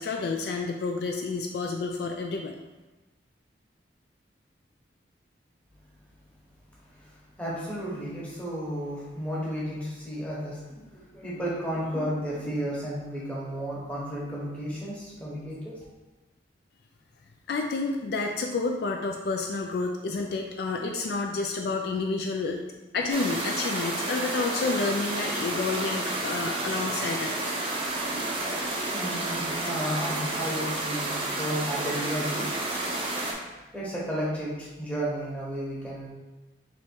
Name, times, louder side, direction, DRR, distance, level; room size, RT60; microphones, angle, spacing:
voice 1, 0.0-2.5 17.5-22.6 22.9-27.5, left 3 dB, 55° left, 2 dB, 0.3 m, -29 dB
voice 2, 6.9-15.7 28.9-32.5 33.7-36.1, equal, 5° left, -7 dB, 1.0 m, -33 dB
sound 1, 23.1-33.3, right 2 dB, 30° right, 0.5 m, -31 dB
3.4 x 3.0 x 4.4 m, 1.1 s
head